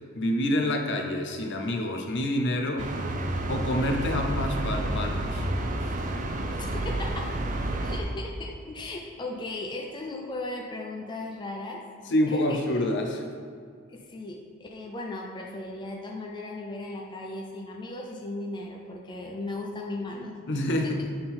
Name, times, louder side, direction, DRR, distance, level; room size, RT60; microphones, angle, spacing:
voice 1, 0.1-2.9 3.5-5.5 5.8-5.9 12.1-13.2 20.5-21.0, left 1 dB, 55° left, 3 dB, 0.7 m, -27 dB
sound 1, 2.8-8.0, right 1 dB, 35° right, 0.5 m, -30 dB
voice 2, 6.5-7.3 7.7-11.8 12.3-12.6 13.9-20.3 20.8-21.0, left 2 dB, 20° left, 0 dB, 0.5 m, -37 dB
8.6 x 3.8 x 4.3 m, 2.2 s
head